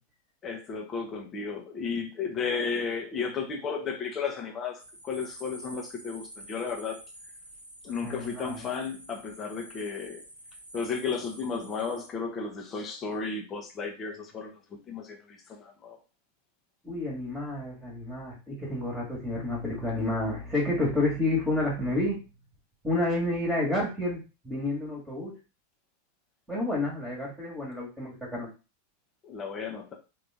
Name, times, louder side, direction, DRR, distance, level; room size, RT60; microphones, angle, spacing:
voice 1, 0.4-7.0 7.8-10.2 10.7-16.0 29.2-29.9, left 5 dB, 25° left, 2 dB, 1.0 m, -34 dB
sound 1, 4.8-12.1, right 1 dB, 80° right, 1.0 m, -48 dB
voice 2, 8.0-8.6 16.8-22.2 22.8-25.4 26.5-28.5, left 2 dB, 10° right, -5 dB, 1.7 m, -30 dB
3.8 x 3.0 x 3.5 m, 0.31 s
figure-of-eight pair, 90°, 0 cm